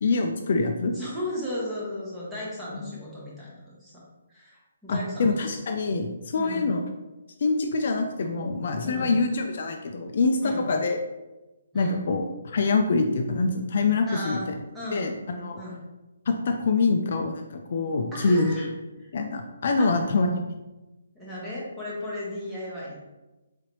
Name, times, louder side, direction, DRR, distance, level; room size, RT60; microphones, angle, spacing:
voice 1, 0.0-0.9 4.9-6.8 7.4-11.0 11.7-14.4 14.9-15.6 16.3-18.5 19.1-20.5, left 3 dB, 50° left, 4 dB, 0.3 m, -25 dB
voice 2, 0.9-3.9 4.3-5.6 6.4-6.7 8.8-9.1 10.4-10.7 11.7-12.0 14.1-14.5 14.7-15.8 18.1-18.7 19.0-19.1 19.8-20.1 21.1-23.0, left 1 dB, 5° right, -7 dB, 0.9 m, -35 dB
3.9 x 3.1 x 3.0 m, 1.1 s
hypercardioid pair, 170°, 0 cm